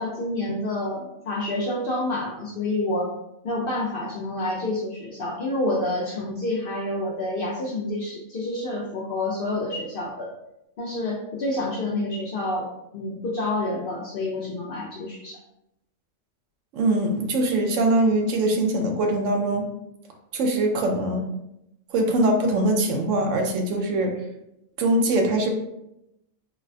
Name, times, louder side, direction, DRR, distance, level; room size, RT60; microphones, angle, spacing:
voice 1, 0.0-3.1 3.4-10.3 10.8-12.7 12.9-15.4, left 2 dB, 65° left, -3 dB, 0.6 m, -28 dB
voice 2, 16.7-19.7 20.3-21.3 21.9-24.1 24.8-25.5, right 1 dB, 70° right, 3 dB, 0.9 m, -22 dB
3.9 x 2.0 x 2.6 m, 0.84 s
omnidirectional pair, 1.4 m